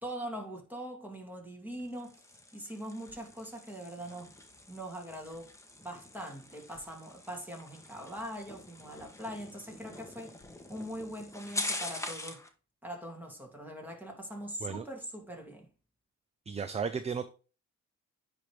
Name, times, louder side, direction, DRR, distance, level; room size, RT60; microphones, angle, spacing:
voice 1, 0.0-2.2 2.5-4.3 4.7-5.5 5.8-10.4 10.7-12.4 12.8-15.7, equal, 5° right, 2.5 m, -42 dB
sound 1, 1.8-12.5, left 2 dB, 10° left, 1.2 m, -44 dB
voice 2, 16.5-17.2, right 6 dB, 20° right, 0.4 m, -34 dB
10.0 x 3.5 x 3.2 m
cardioid pair, 90°, 30 cm